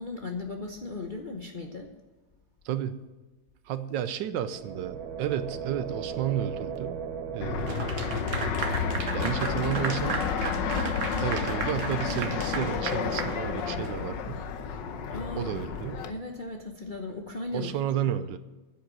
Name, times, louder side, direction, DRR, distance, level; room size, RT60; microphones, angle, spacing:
voice 1, 0.0-1.9 15.1-15.5 16.1-17.7, left 3 dB, 40° left, 2 dB, 0.7 m, -37 dB
voice 2, 2.6-3.0 3.6-7.0 7.3-7.9 9.1-10.3 11.2-14.4 15.4-16.0 17.5-18.4, right 10 dB, 75° right, 12 dB, 1.3 m, -32 dB
sound 1, 4.3-14.2, right 7 dB, 90° right, 1.8 m, -40 dB
Fixed-wing aircraft airplane, 7.4-16.1, left 6 dB, 70° left, 1.5 m, -31 dB
Clapping / Applause, 7.7-14.0, right 6 dB, 50° right, 1.1 m, -35 dB
10.0 x 7.9 x 7.5 m, 1.2 s
omnidirectional pair, 2.1 m